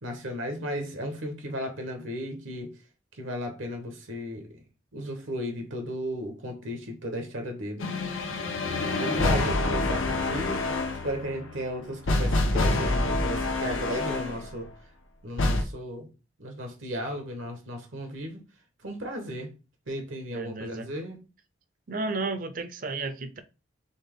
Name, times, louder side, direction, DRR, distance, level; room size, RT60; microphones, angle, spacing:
voice 1, 0.0-2.7 3.2-4.6 4.9-7.9 9.0-10.7 11.0-14.7 15.2-16.1 16.4-18.4 18.8-19.5 19.9-21.2, equal, 80° right, 1.1 m, -35 dB
sound 1, 7.8-14.5 15.4-15.6, left 2 dB, 90° left, 0.8 m, -27 dB
voice 2, 8.8-9.2 20.3-20.9 21.9-23.4, right 3 dB, 45° right, 0.5 m, -33 dB
4.2 x 3.3 x 3.6 m
head